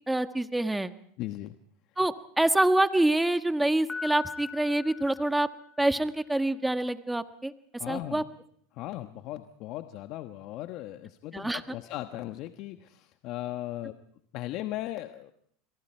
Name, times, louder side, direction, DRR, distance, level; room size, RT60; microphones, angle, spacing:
voice 1, 0.1-0.9 2.0-5.5 5.8-7.5 7.9-8.2 11.3-11.6, right 1 dB, 5° right, 9 dB, 1.4 m, -26 dB
voice 2, 1.2-1.5 7.8-8.2 8.7-13.9 14.3-15.3, left 15 dB, 55° left, 8 dB, 1.2 m, -37 dB
Piano, 3.9-6.0, left 5 dB, 10° left, 3.9 m, -41 dB
29.5 x 23.0 x 4.5 m, 0.66 s
hypercardioid pair, 95°, 0 cm